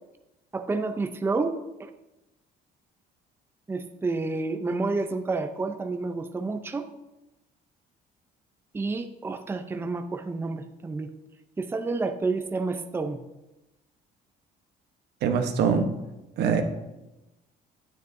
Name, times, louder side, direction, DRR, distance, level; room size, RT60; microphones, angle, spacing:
voice 1, 0.5-1.9 3.7-6.9 8.7-11.1 11.6-13.2, right 3 dB, 15° right, 8 dB, 0.5 m, -29 dB
voice 2, 15.2-15.9 16.4-16.6, right 6 dB, 75° right, 5 dB, 1.0 m, -23 dB
9.4 x 9.3 x 2.6 m, 1.0 s
cardioid pair, 110°, 17 cm